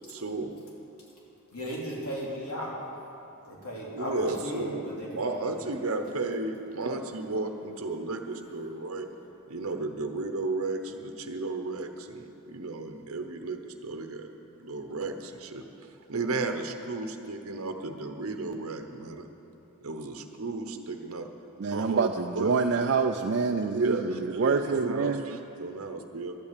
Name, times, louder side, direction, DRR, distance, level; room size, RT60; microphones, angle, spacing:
voice 1, 0.1-0.5 3.9-4.9 5.1-9.1 9.5-14.3 14.6-15.6 16.1-19.3 19.8-21.3 21.7-22.5 23.7-26.4, right 3 dB, 70° right, 5 dB, 0.9 m, -33 dB
voice 2, 1.5-2.8 3.5-5.7, equal, 85° left, -4 dB, 3.2 m, -36 dB
voice 3, 21.6-25.2, right 4 dB, 55° right, 3 dB, 0.5 m, -26 dB
12.0 x 8.8 x 8.3 m, 2.9 s
head